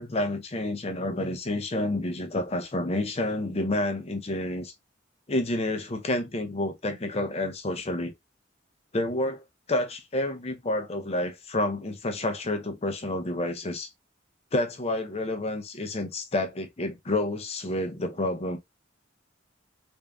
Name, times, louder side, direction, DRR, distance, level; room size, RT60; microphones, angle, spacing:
voice 1, 0.0-4.7 5.3-8.1 8.9-13.9 14.5-18.6, left 1 dB, 35° left, 0.6 m, -29 dB
3.5 x 2.6 x 3.4 m
head